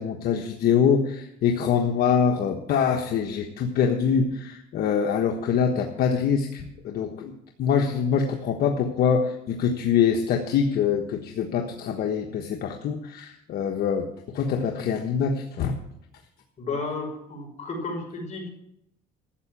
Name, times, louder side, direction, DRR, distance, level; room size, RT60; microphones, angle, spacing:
voice 1, 0.0-7.3 7.6-15.8, left 7 dB, 65° left, 2 dB, 1.3 m, -24 dB
voice 2, 16.6-18.5, left 3 dB, 45° left, 0 dB, 5.9 m, -32 dB
13.5 x 8.1 x 7.5 m, 0.78 s
cardioid pair, 110°, 17 cm